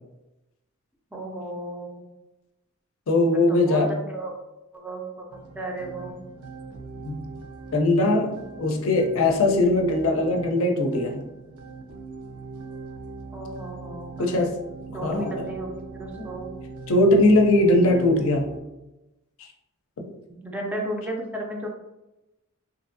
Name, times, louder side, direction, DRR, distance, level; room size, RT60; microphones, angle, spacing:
voice 1, 1.1-2.1 3.3-4.3 4.7-5.3 5.5-6.2 13.3-14.4 14.9-16.5 20.3-21.7, right 1 dB, 5° right, 0 dB, 0.3 m, -34 dB
voice 2, 3.1-3.9 7.0-7.2 7.7-11.2 14.2-14.5 14.9-15.3 16.1-16.3 16.9-18.5 19.4-19.5 20.0-20.1, left 2 dB, 70° left, 2 dB, 0.5 m, -20 dB
sound 1, 5.3-18.6, right 4 dB, 90° right, 0.4 m, -40 dB
2.7 x 2.5 x 2.6 m, 0.98 s
head